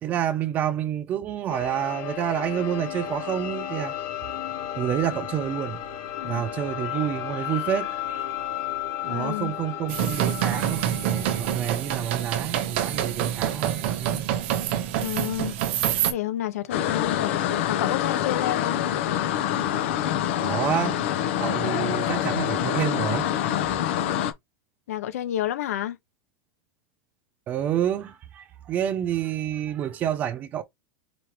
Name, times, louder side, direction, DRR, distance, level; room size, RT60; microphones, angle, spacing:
voice 1, 0.0-3.9 4.8-5.8 6.2-8.3 9.0-14.2 20.4-21.0 21.4-23.3 27.5-30.6, right 10 dB, 20° right, 0.4 m, -28 dB
sound 1, 1.5-17.1, left 11 dB, 35° left, 1.1 m, -35 dB
voice 2, 9.0-9.5 14.9-15.5 16.1-18.8 24.9-26.0, left 12 dB, 80° left, 1.1 m, -30 dB
sound 2, 9.9-16.1, right 11 dB, 50° right, 0.9 m, -26 dB
sound 3, 16.7-24.3, left 11 dB, 55° left, 0.8 m, -26 dB
5.0 x 3.0 x 2.9 m
supercardioid pair, 175°, 8 cm